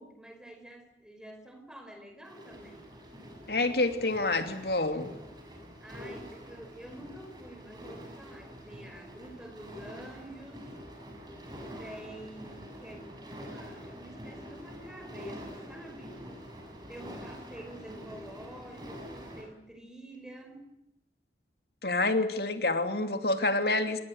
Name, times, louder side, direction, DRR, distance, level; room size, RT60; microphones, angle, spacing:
voice 1, 0.0-2.9 5.8-10.7 11.8-16.3 16.9-20.7, right 1 dB, 5° right, 5 dB, 5.1 m, -48 dB
sound 1, 2.2-19.4, equal, 25° right, 7.0 m, -46 dB
voice 2, 3.5-5.1 21.8-24.0, left 2 dB, 60° left, 7 dB, 2.8 m, -28 dB
27.5 x 21.0 x 8.0 m, 0.85 s
head